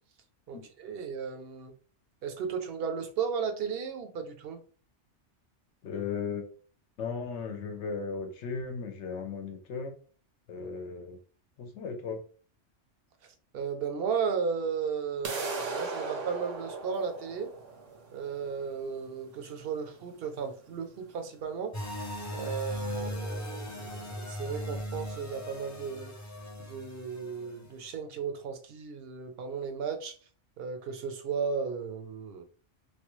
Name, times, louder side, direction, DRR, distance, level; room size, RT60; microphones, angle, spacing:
voice 1, 0.5-1.7 2.2-4.6 13.5-17.5 18.1-21.7 22.3-26.1 26.6-30.1 30.6-32.4, right 6 dB, 60° right, 0.7 m, -35 dB
voice 2, 5.8-6.4 7.0-9.9 10.5-11.2 11.6-12.2, left 5 dB, 70° left, 0.9 m, -36 dB
sound 1, 15.2-21.2, right 4 dB, 80° right, 1.1 m, -39 dB
sound 2, 21.7-27.7, equal, 25° left, 0.3 m, -38 dB
3.1 x 2.3 x 3.0 m
omnidirectional pair, 1.2 m